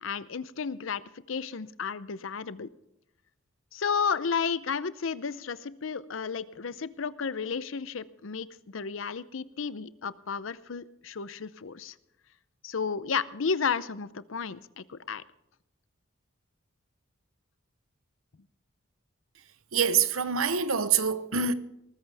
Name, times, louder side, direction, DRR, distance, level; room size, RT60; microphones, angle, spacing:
voice 1, 0.0-2.7 3.7-11.9 12.6-15.2, left 6 dB, 70° left, 0.6 m, -32 dB
voice 2, 19.7-21.5, right 6 dB, 90° right, 0.9 m, -25 dB
19.5 x 14.5 x 3.5 m
head